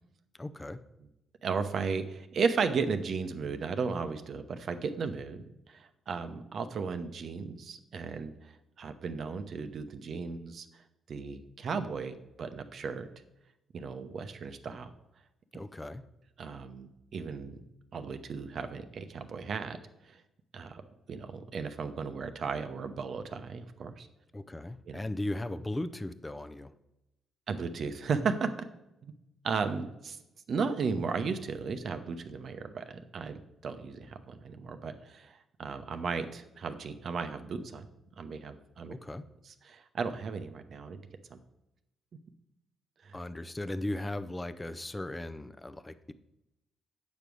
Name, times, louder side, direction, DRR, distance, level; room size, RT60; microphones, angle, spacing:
voice 1, 0.4-0.8 15.5-16.0 24.3-26.7 38.9-39.3 43.1-46.1, left 1 dB, 15° left, 11 dB, 0.5 m, -37 dB
voice 2, 1.4-13.1 13.7-14.9 16.4-17.6 17.9-19.8 20.0-20.2 20.5-20.8 21.1-24.1 24.9-25.0 27.5-28.5 29.0-29.1 29.4-30.2 30.5-33.4 33.6-37.9 38.2-38.9 39.6-41.0 41.3-41.4 43.0-43.2, right 5 dB, 60° right, 9 dB, 0.8 m, -35 dB
8.2 x 5.3 x 6.2 m, 0.89 s
cardioid pair, 75°, 0 cm